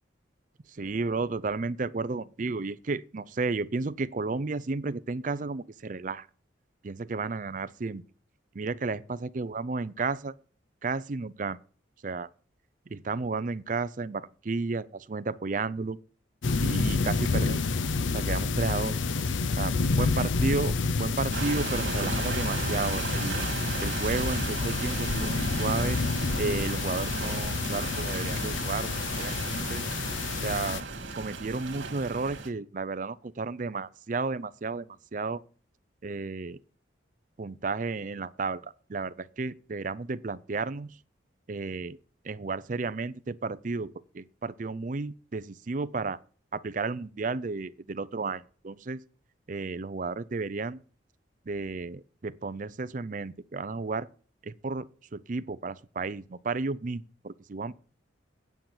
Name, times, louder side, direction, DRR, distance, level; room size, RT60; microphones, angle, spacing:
voice 1, 0.7-6.3 6.8-8.0 8.5-10.4 10.8-11.6 12.0-12.3 12.9-16.0 16.6-17.7 18.1-18.9 19.6-20.7 21.0-23.4 23.8-26.0 26.4-28.9 29.2-29.8 30.4-30.8 31.2-35.4 36.0-36.6 37.4-41.0 41.5-42.0 42.2-46.2 46.5-49.0 49.5-50.8 51.5-54.1 54.4-54.9 55.1-57.7, right 3 dB, 40° right, 0.5 m, -32 dB
sound 1, 16.4-30.8, left 4 dB, 80° left, 0.7 m, -29 dB
sound 2, 21.3-32.5, right 3 dB, 80° right, 1.9 m, -34 dB
9.2 x 7.7 x 5.7 m
head